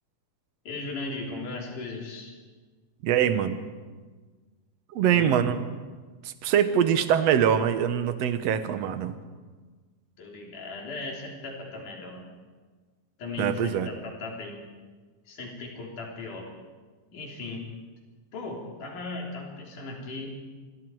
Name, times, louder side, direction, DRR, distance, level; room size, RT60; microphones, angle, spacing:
voice 1, 0.6-2.3 5.0-5.4 10.2-12.3 13.2-14.6 15.3-16.5 17.1-17.6 18.3-20.4, left 3 dB, 85° left, -1 dB, 5.0 m, -37 dB
voice 2, 3.0-3.6 4.9-5.6 6.2-9.2 13.4-13.9, right 9 dB, 65° right, 10 dB, 2.0 m, -23 dB
26.5 x 22.0 x 4.7 m, 1.4 s
omnidirectional pair, 3.5 m